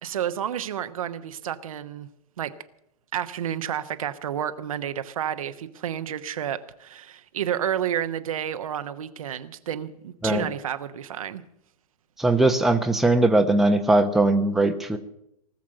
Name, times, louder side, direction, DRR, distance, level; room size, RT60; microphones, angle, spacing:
voice 1, 0.0-2.1 2.4-2.5 3.1-11.4, right 9 dB, 60° right, 10 dB, 1.0 m, -30 dB
voice 2, 12.2-15.0, right 2 dB, ahead, 4 dB, 1.0 m, -20 dB
19.0 x 7.4 x 9.8 m, 0.78 s
figure-of-eight pair, 105°, 20 cm